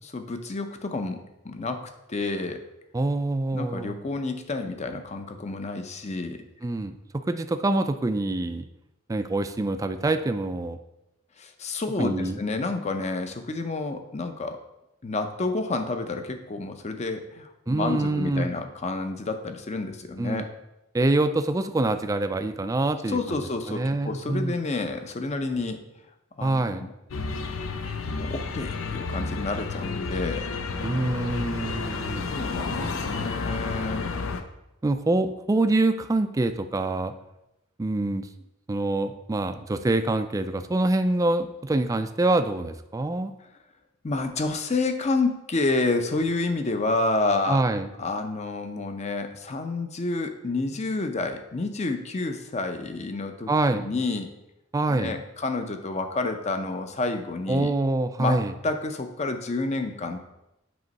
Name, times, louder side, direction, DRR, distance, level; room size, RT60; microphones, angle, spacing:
voice 1, 0.0-1.2 1.4-2.6 3.5-6.4 11.4-14.6 15.0-20.5 23.1-25.8 26.4-26.9 28.1-30.5 32.3-34.1 44.0-47.6 48.0-54.3 54.9-57.7 58.2-60.2, left 3 dB, 35° left, 7 dB, 0.6 m, -29 dB
voice 2, 2.9-3.9 6.6-8.7 9.1-10.8 12.0-12.4 17.7-18.5 20.2-20.5 20.9-23.2 23.7-24.5 26.4-26.9 30.8-32.3 32.8-33.0 34.8-37.1 37.8-38.3 38.7-43.3 47.5-47.9 53.5-53.9 54.7-55.2 57.5-58.5, right 2 dB, 15° right, 9 dB, 0.3 m, -25 dB
sound 1, 27.1-34.4, left 4 dB, 80° left, 0.5 m, -31 dB
7.9 x 3.1 x 5.2 m, 0.90 s
head